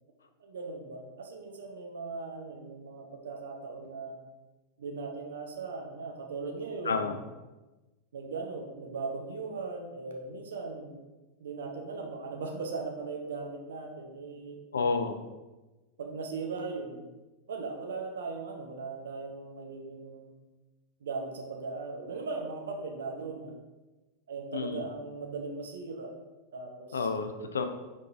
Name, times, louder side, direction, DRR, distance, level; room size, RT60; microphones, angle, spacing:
voice 1, 0.4-4.2 4.8-7.2 8.1-11.0 11.4-14.6 16.0-17.1 17.5-20.3 21.0-23.5 24.3-26.1 26.5-27.1, right 4 dB, 65° right, 2 dB, 0.7 m, -38 dB
voice 2, 6.8-7.2 14.7-15.2 24.5-24.9 26.9-27.6, left 4 dB, 70° left, 8 dB, 0.4 m, -30 dB
5.6 x 3.6 x 2.5 m, 1.1 s
figure-of-eight pair, 90°, 0 cm